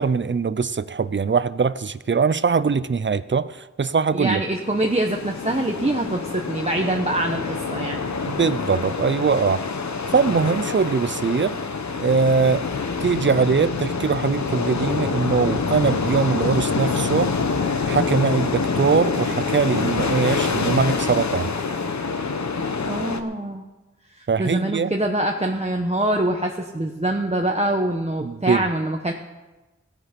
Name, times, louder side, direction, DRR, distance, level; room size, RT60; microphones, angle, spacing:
voice 1, 0.0-4.4 8.3-9.6 10.1-11.6 12.0-12.7 13.0-17.3 17.9-21.5 24.3-24.9 28.2-28.7, right 5 dB, 40° right, 16 dB, 0.6 m, -22 dB
voice 2, 4.1-8.0 22.9-23.7 24.2-29.1, right 1 dB, 20° right, 2 dB, 1.1 m, -24 dB
sound 1, 4.6-23.2, left 4 dB, 70° left, 1.0 m, -26 dB
17.0 x 9.9 x 5.3 m, 1.1 s
wide cardioid pair, 60°, 29 cm